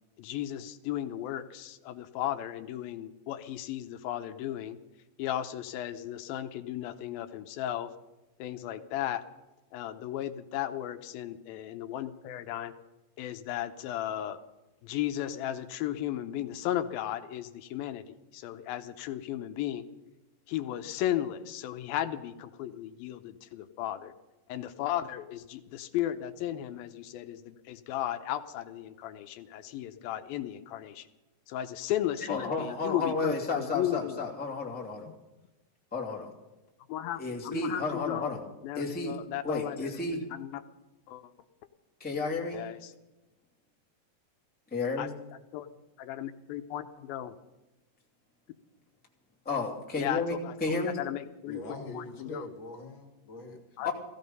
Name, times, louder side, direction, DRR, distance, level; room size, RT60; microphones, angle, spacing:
voice 1, 0.2-4.8 5.2-7.9 8.4-9.2 9.7-12.7 13.2-14.4 14.8-18.0 18.3-19.9 20.5-24.1 24.5-31.1 31.5-34.2 36.9-38.3 38.6-40.0 40.3-40.6 41.1-41.3 42.5-42.9 45.0-45.1 45.5-45.7 46.0-47.3 50.0-51.6 51.9-52.5 53.8-53.9, left 12 dB, 85° left, 8 dB, 2.6 m, -35 dB
voice 2, 32.3-35.1 35.9-36.3 37.2-38.4 38.7-39.2 39.4-40.2 42.0-42.6 44.7-45.1 49.4-50.9 53.8-53.9, left 3 dB, 5° left, -2 dB, 1.8 m, -32 dB
voice 3, 51.5-53.9, left 2 dB, 40° left, 1 dB, 2.5 m, -43 dB
17.0 x 15.5 x 5.4 m, 1.0 s
omnidirectional pair, 4.1 m